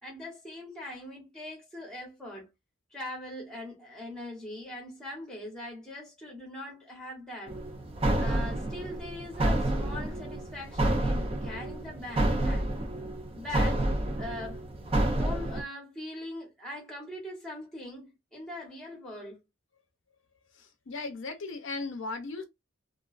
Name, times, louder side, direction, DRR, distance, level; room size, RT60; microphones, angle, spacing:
voice 1, 0.0-2.5 2.9-7.6 8.2-12.7 13.3-13.9 14.2-14.6 15.2-19.4, left 1 dB, 5° left, 0.8 m, -41 dB
sound 1, 7.5-15.6, right 1 dB, 25° right, 0.4 m, -29 dB
voice 2, 20.6-22.4, left 3 dB, 60° left, 0.5 m, -37 dB
2.4 x 2.3 x 2.3 m
head